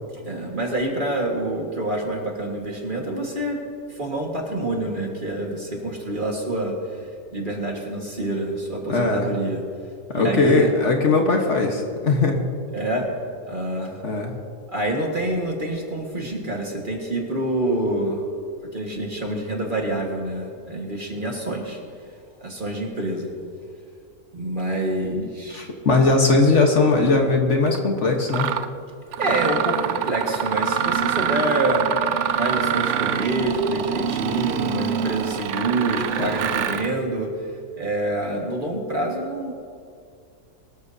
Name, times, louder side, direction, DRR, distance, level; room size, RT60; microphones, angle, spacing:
voice 1, 0.1-3.6 3.9-7.1 7.3-9.6 10.1-10.7 12.7-13.1 13.5-14.0 14.7-18.2 18.7-21.8 22.4-23.3 24.3-25.7 29.2-37.5 37.7-39.5, right 1 dB, 35° right, 0 dB, 1.8 m, -27 dB
voice 2, 8.9-9.3 10.1-12.5 14.0-14.3 25.5-28.5 36.2-36.3, left 3 dB, 50° left, 2 dB, 1.5 m, -19 dB
Mechanisms, 27.7-27.8 28.3-28.7 29.1-36.9, right 8 dB, 65° right, 0.8 m, -25 dB
22.5 x 13.0 x 2.7 m, 2.4 s
omnidirectional pair, 1.6 m